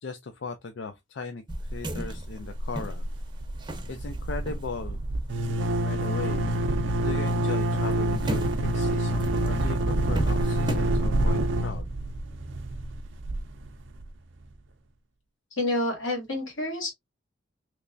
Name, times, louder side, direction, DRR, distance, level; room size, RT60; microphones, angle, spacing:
voice 1, 0.0-3.0 3.9-5.0 5.8-6.5 7.0-11.9, left 4 dB, 65° left, 0.4 m, -37 dB
sound 1, 1.5-6.6 6.9-11.3, right 1 dB, 25° right, 0.6 m, -33 dB
sound 2, 2.2-2.8 3.0-3.2 3.4-14.1, right 1 dB, 70° right, 0.5 m, -27 dB
voice 2, 15.6-16.9, left 1 dB, 85° left, 2.1 m, -28 dB
3.2 x 3.2 x 2.5 m
head